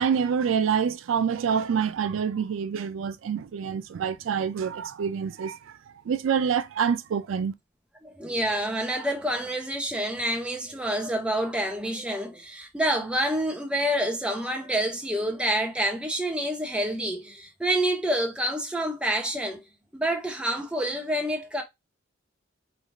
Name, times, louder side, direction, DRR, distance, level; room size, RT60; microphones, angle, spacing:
voice 1, 0.0-5.6 6.1-7.5, right 7 dB, 90° right, 0.4 m, -26 dB
voice 2, 8.0-19.6 19.9-21.6, right 1 dB, 5° right, 0.6 m, -28 dB
3.1 x 2.4 x 2.5 m
head